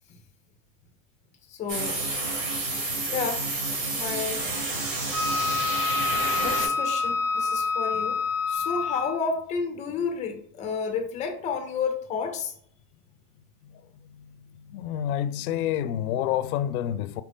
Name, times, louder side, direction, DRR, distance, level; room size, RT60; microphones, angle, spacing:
voice 1, 1.5-2.0 3.1-3.5 3.9-4.4 6.1-8.2 8.5-12.5, left 5 dB, 15° left, 0.5 m, -31 dB
sound 1, 1.7-6.7, right 2 dB, 65° right, 1.8 m, -29 dB
Wind instrument woodwind instrument, 5.1-9.3, left 4 dB, ahead, 1.0 m, -27 dB
voice 2, 14.7-17.2, left 10 dB, 85° left, 0.5 m, -28 dB
4.5 x 2.5 x 3.5 m
supercardioid pair, 155°, 42 cm